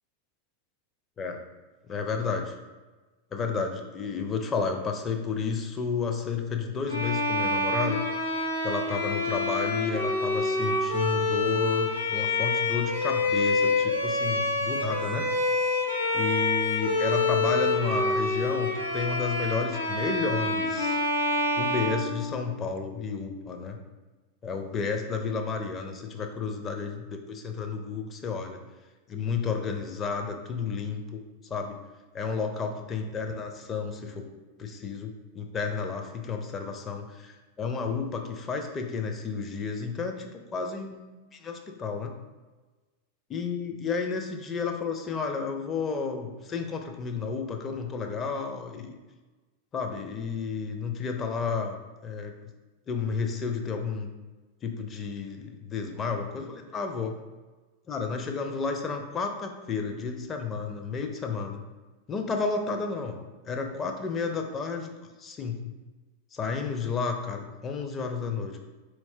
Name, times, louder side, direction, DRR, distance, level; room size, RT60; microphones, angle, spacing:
voice 1, 1.9-2.5 3.3-8.0 8.6-15.3 16.1-21.0 21.6-23.8 24.4-28.6 29.1-31.2 31.5-31.8 32.1-34.3 34.6-41.0 41.3-42.1 43.3-49.0 49.7-52.3 52.9-54.1 54.6-57.1 57.9-61.6 62.1-63.2 63.4-64.9 65.2-65.6 66.3-68.6, left 5 dB, 25° left, 4 dB, 0.5 m, -31 dB
Bowed string instrument, 6.9-22.7, left 2 dB, 85° left, 0.9 m, -27 dB
4.5 x 4.3 x 2.7 m, 1.2 s
figure-of-eight pair, 90°, 0 cm